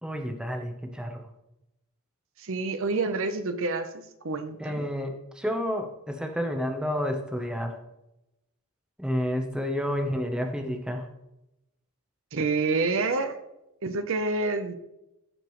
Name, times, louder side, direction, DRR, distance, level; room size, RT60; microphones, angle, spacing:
voice 1, 0.0-1.2 4.6-7.8 9.0-11.1, equal, 5° right, 4 dB, 0.8 m, -30 dB
voice 2, 2.4-4.9 12.3-13.4 13.8-14.7, right 3 dB, 65° right, 9 dB, 0.8 m, -28 dB
14.5 x 5.0 x 3.1 m, 0.90 s
head